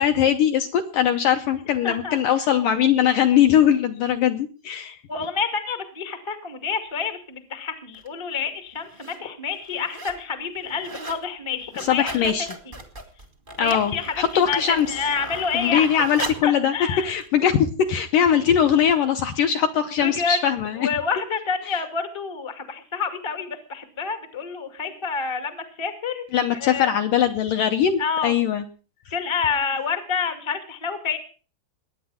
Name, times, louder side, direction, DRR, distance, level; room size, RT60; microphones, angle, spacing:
voice 1, 0.0-5.0 11.8-12.5 13.6-14.9 15.5-16.7 17.0-20.9 26.3-28.6, left 9 dB, 75° left, 6 dB, 2.0 m, -21 dB
voice 2, 1.8-2.2 5.1-12.3 12.6-12.7 13.6-15.9 16.2-17.2 20.0-20.4 20.8-26.3 26.5-26.9 28.0-28.3 29.1-31.2, left 5 dB, 35° left, 6 dB, 0.4 m, -28 dB
sound 1, 7.9-8.1 8.8-9.2 9.5-10.2 10.5-11.2 11.6-16.5 17.2-17.3, right 2 dB, 40° right, 0.7 m, -37 dB
21.0 x 9.4 x 5.7 m, 0.38 s
omnidirectional pair, 4.9 m